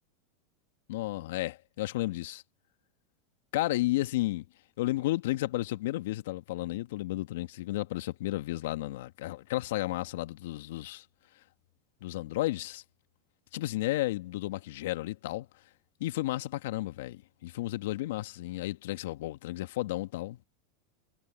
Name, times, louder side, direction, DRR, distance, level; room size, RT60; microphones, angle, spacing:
voice 1, 0.9-2.4 3.5-4.5 4.8-11.1 12.0-12.8 13.5-15.5 16.0-20.4, left 17 dB, 70° left, 1.9 m, -32 dB
hypercardioid pair, 95°, 0 cm